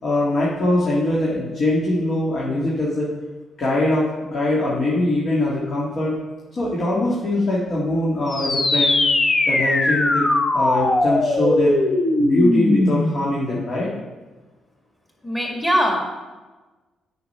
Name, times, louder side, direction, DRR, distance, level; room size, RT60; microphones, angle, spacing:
voice 1, 0.0-3.1 3.6-6.2 6.5-9.0 9.4-10.2 10.5-11.8 12.2-13.9, left 1 dB, 50° left, -6 dB, 2.0 m, -22 dB
sound 1, 8.3-13.3, left 2 dB, 30° left, 0.8 m, -19 dB
voice 2, 15.2-16.0, equal, 5° left, 1 dB, 1.9 m, -21 dB
8.3 x 5.2 x 5.6 m, 1.2 s
cardioid pair, 90°, 0 cm